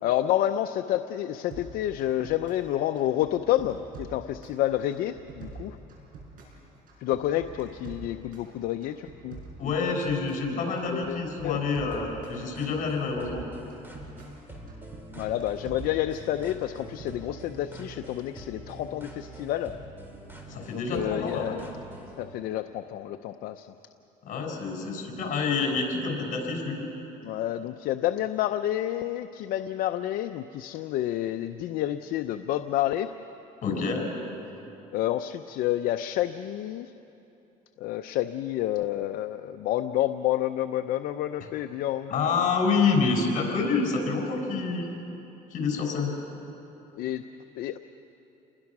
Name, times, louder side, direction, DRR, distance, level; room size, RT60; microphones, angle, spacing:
voice 1, 0.0-5.8 7.0-9.7 10.5-11.6 15.1-19.8 20.7-21.7 22.2-23.7 27.2-33.1 34.9-36.9 37.8-42.1 46.9-47.2 47.6-47.8, left 13 dB, 80° left, 8 dB, 0.6 m, -29 dB
sound 1, 1.5-2.7 3.0-4.6 4.9-6.6 6.9-8.5 8.8-10.5 10.8-12.4 12.7-14.4 14.7-16.3 16.6-17.1, right 4 dB, 70° right, 6.4 m, -45 dB
voice 2, 9.6-13.4 20.5-21.6 24.2-26.9 33.6-34.1 42.1-44.9 45.5-46.1, left 4 dB, 60° left, 1 dB, 5.7 m, -27 dB
sound 2, 11.9-22.2, right 1 dB, 15° right, 4.2 m, -45 dB
28.5 x 21.0 x 6.1 m, 2.9 s
cardioid pair, 110°, 15 cm